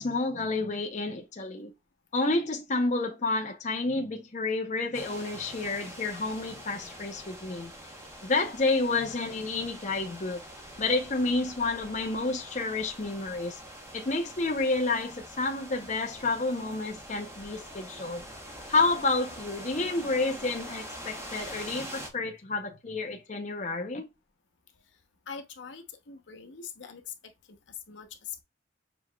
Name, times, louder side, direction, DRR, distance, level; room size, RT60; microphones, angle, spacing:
voice 1, 0.0-1.7 2.1-7.7 8.2-10.4 10.8-13.6 13.9-18.2 18.7-24.1, left 3 dB, 40° left, 0.6 m, -30 dB
sound 1, 4.9-22.1, equal, 15° right, 1.0 m, -44 dB
voice 2, 25.3-27.0 27.9-28.1, left 5 dB, 75° left, 0.9 m, -43 dB
6.9 x 3.1 x 2.3 m
head